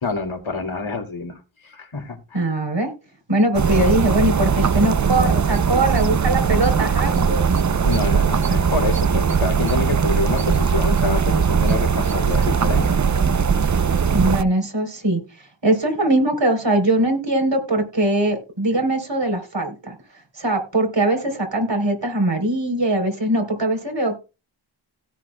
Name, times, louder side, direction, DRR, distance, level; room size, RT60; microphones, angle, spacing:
voice 1, 0.0-1.4 1.6-2.5 7.8-13.0, left 4 dB, 80° left, 5 dB, 2.5 m, -27 dB
voice 2, 2.3-2.9 3.3-7.5 14.1-15.2 15.6-19.9 20.4-24.2, right 1 dB, 65° right, 5 dB, 3.8 m, -21 dB
sound 1, 3.5-14.4, right 6 dB, 40° right, 0.6 m, -19 dB
17.0 x 6.2 x 2.3 m, 0.30 s
cardioid pair, 40°, 47 cm